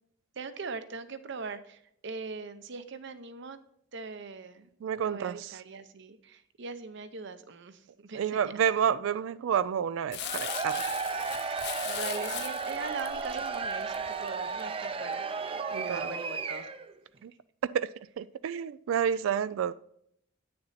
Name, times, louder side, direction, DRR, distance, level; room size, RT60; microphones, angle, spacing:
voice 1, 0.3-3.6 3.9-4.7 5.0-8.5 11.8-15.2 15.8-16.7 19.3-19.4, right 4 dB, 60° right, 0.7 m, -41 dB
voice 2, 4.8-5.5 8.1-10.8 15.7-16.0 17.2-17.3 17.6-17.9 18.2-19.7, right 8 dB, 90° right, 0.3 m, -29 dB
Crumpling crinkling, 10.1-14.6 15.1-15.2, left 13 dB, 55° left, 0.4 m, -40 dB
Cheering / Crowd, 10.2-16.9, right 4 dB, 30° right, 0.5 m, -34 dB
9.2 x 6.8 x 4.1 m
head